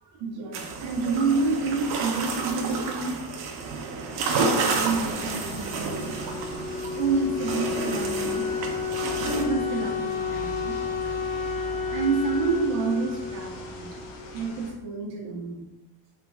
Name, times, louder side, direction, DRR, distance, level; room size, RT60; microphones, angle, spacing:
voice 1, 0.0-3.2 4.2-6.3 6.9-8.5 9.2-10.7 11.0-11.2 11.9-14.1 14.3-15.6, right 4 dB, 80° right, 0 dB, 1.1 m, -29 dB
sound 1, 0.5-9.4, right 4 dB, 60° right, 0.8 m, -30 dB
sound 2, 4.7-14.7, equal, 80° left, 1.0 m, -40 dB
Wind instrument woodwind instrument, 5.9-14.6, left 6 dB, 45° left, 1.3 m, -31 dB
4.4 x 3.8 x 2.3 m, 1.1 s
cardioid pair, 130°, 43 cm